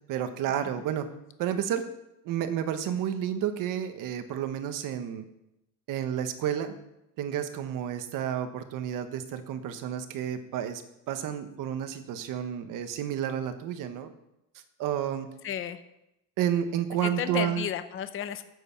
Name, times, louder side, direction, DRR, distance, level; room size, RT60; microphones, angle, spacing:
voice 1, 0.1-1.1 1.4-1.8 2.2-5.2 5.9-6.7 7.2-10.8 11.1-14.1 14.8-15.3 16.4-17.7, right 9 dB, 60° right, 9 dB, 1.3 m, -31 dB
voice 2, 15.4-15.8 17.0-18.4, left 9 dB, 35° left, 10 dB, 0.8 m, -32 dB
10.0 x 8.0 x 7.1 m, 0.88 s
cardioid pair, 165°, 36 cm